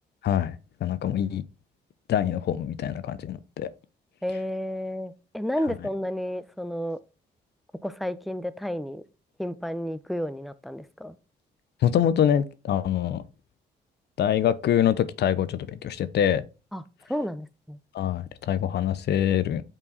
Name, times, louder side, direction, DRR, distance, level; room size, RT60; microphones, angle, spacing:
voice 1, 0.2-0.6 0.8-1.4 2.1-3.7 11.8-13.2 14.2-16.4 17.9-19.6, left 10 dB, 65° left, 0.6 m, -24 dB
voice 2, 4.2-7.0 7.8-9.0 9.4-11.2 16.7-16.8 17.1-17.8, equal, ahead, 0.6 m, -31 dB
5.9 x 4.6 x 4.0 m
supercardioid pair, 65°, 18 cm